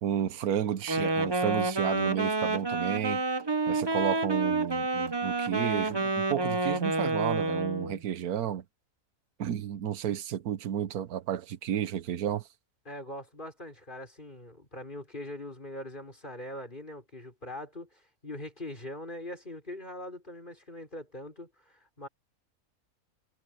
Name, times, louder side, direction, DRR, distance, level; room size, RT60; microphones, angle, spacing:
voice 1, 0.0-3.2 3.7-8.6 9.4-12.4, right 10 dB, 80° right, 1.3 m, -32 dB
Wind instrument woodwind instrument, 0.8-8.0, right 3 dB, 20° right, 0.8 m, -29 dB
voice 2, 12.9-22.1, left 1 dB, 30° left, 5.9 m, -42 dB
omnidirectional pair, 1.6 m